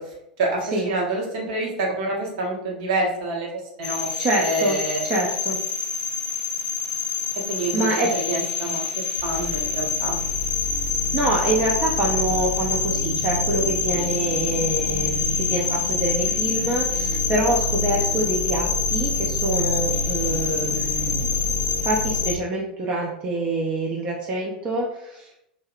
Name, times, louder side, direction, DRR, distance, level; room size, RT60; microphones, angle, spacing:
voice 1, 0.0-5.0 7.5-10.2, right 2 dB, 55° right, -2 dB, 0.8 m, -27 dB
sound 1, 3.8-22.4, left 4 dB, 60° left, 0.5 m, -25 dB
voice 2, 4.2-5.6 7.7-8.1 11.1-21.3 21.8-25.3, right 2 dB, 30° right, -2 dB, 0.4 m, -26 dB
2.7 x 2.0 x 2.4 m, 0.80 s
figure-of-eight pair, 85°, 5 cm